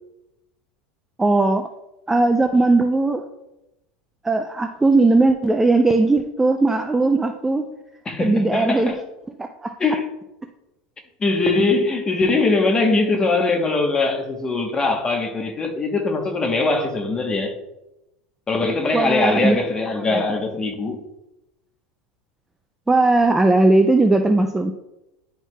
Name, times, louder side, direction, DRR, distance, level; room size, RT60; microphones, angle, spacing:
voice 1, 1.2-1.7 2.1-3.2 4.2-7.7 8.2-8.9 9.4-9.8 18.9-19.6 20.1-20.2 22.9-24.7, right 2 dB, 10° right, 0.3 m, -18 dB
voice 2, 8.0-9.0 9.8-10.1 11.2-17.5 18.5-21.0, left 3 dB, 20° left, 1.0 m, -21 dB
10.5 x 4.6 x 2.2 m
supercardioid pair, 140°, 4 cm